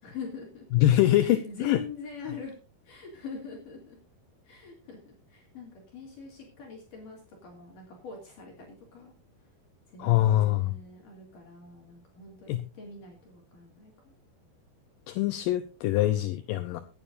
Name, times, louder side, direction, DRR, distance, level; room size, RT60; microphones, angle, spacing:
voice 1, 0.0-0.7 1.1-2.5 2.8-4.0 4.4-9.1 9.9-14.1, left 4 dB, 55° left, 0 dB, 4.0 m, -43 dB
voice 2, 0.7-1.8 10.0-10.7 12.5-12.6 15.1-16.8, left 14 dB, 80° left, 10 dB, 2.0 m, -24 dB
23.0 x 9.1 x 2.6 m, 0.32 s
omnidirectional pair, 4.6 m